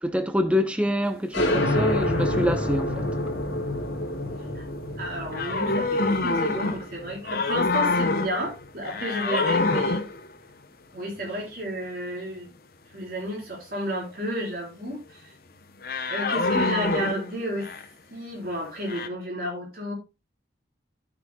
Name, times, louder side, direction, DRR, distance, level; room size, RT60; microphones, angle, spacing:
voice 1, 0.0-3.1 9.7-9.8, equal, 5° right, 0.7 m, -26 dB
sound 1, 1.3-8.6, left 1 dB, 80° left, 2.4 m, -28 dB
voice 2, 5.0-10.0 10.9-12.5 12.9-15.3 16.1-17.7 18.1-19.9, right 1 dB, 50° right, 4.2 m, -32 dB
sound 2, 5.3-7.0 7.3-8.5 8.8-10.3 15.8-17.8 18.9-19.1, left 3 dB, 50° left, 0.8 m, -26 dB
12.5 x 6.4 x 2.3 m
head